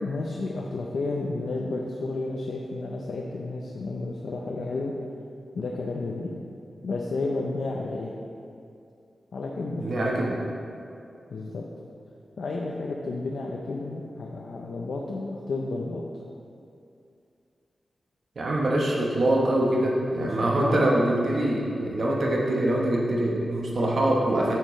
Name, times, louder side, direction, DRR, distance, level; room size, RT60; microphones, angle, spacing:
voice 1, 0.0-4.9 5.5-6.3 6.8-8.1 9.3-9.8 11.3-11.6 12.4-16.0 20.2-20.9, left 3 dB, 70° left, -1 dB, 0.6 m, -31 dB
voice 2, 9.8-10.4 18.4-24.6, right 1 dB, 55° right, -2 dB, 1.1 m, -24 dB
8.6 x 7.5 x 3.2 m, 2.5 s
wide cardioid pair, 120°, 0 cm